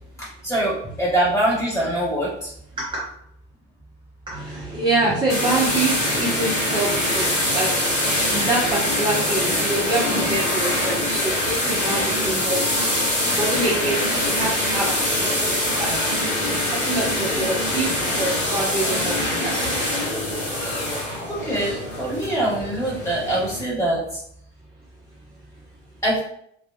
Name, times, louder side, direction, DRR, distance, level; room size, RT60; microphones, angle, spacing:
voice 1, 0.2-2.5 14.1-14.2 21.3-24.2 26.0-26.2, right 1 dB, 10° left, -6 dB, 1.2 m, -24 dB
voice 2, 4.3-12.9 13.2-14.0 14.2-15.4 15.8-15.9 16.7-17.9 18.2-20.0, right 2 dB, 15° right, -5 dB, 0.5 m, -26 dB
sound 1, 5.3-23.6, left 1 dB, 80° left, 1.1 m, -23 dB
2.3 x 2.3 x 2.4 m, 0.68 s
figure-of-eight pair, 60°, 37 cm